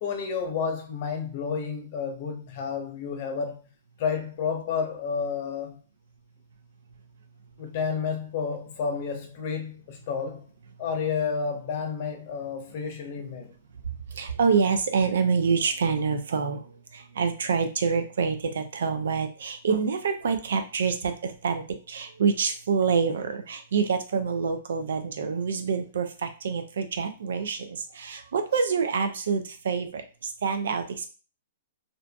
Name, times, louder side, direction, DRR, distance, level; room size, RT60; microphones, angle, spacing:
voice 1, 0.0-3.7 4.0-5.8 7.6-10.5 10.8-13.5, left 6 dB, 50° left, 0.7 m, -30 dB
voice 2, 13.8-31.1, right 5 dB, 75° right, 0.5 m, -27 dB
2.6 x 2.5 x 2.2 m
hypercardioid pair, 130°, 0 cm